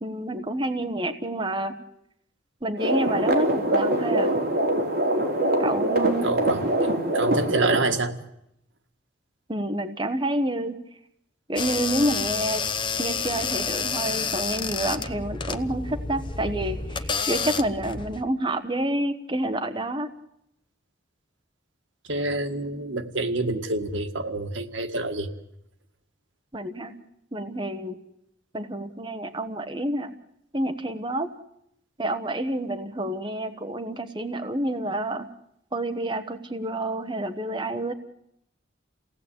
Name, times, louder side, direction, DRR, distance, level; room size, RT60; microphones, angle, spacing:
voice 1, 0.0-1.8 2.6-4.3 5.6-6.3 9.5-10.8 11.5-12.6 13.0-20.1 26.5-27.0 27.3-28.0 28.5-30.1 30.5-31.3 32.0-35.3 35.7-37.9, right 1 dB, 25° right, 6 dB, 1.2 m, -28 dB
sound 1, 2.8-7.8, right 1 dB, 50° right, 3.5 m, -23 dB
voice 2, 6.2-6.7 7.1-8.1 22.1-25.3, right 2 dB, 75° right, 6 dB, 2.0 m, -27 dB
sound 2, 11.6-18.2, left 5 dB, 25° left, 1.0 m, -29 dB
28.5 x 18.0 x 8.7 m, 0.80 s
head